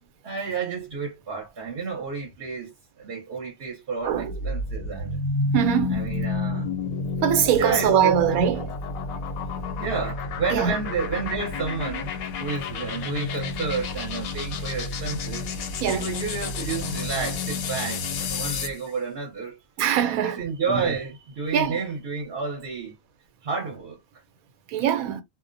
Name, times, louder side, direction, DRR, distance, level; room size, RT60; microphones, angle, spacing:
voice 1, 0.2-2.7 3.0-5.2 5.9-6.7 7.6-8.5 9.8-12.1 12.4-15.5 15.9-19.6 20.0-22.9 23.4-24.0, right 5 dB, 50° right, 0.9 m, -30 dB
voice 2, 4.0-4.3 5.5-6.0 7.2-8.7 10.5-10.7 15.8-16.1 19.8-20.4 20.7-20.9 21.5-21.8 24.7-25.2, right 9 dB, 90° right, 1.1 m, -22 dB
sound 1, 4.1-18.8, left 4 dB, 85° left, 1.1 m, -30 dB
2.4 x 2.1 x 2.5 m
omnidirectional pair, 1.4 m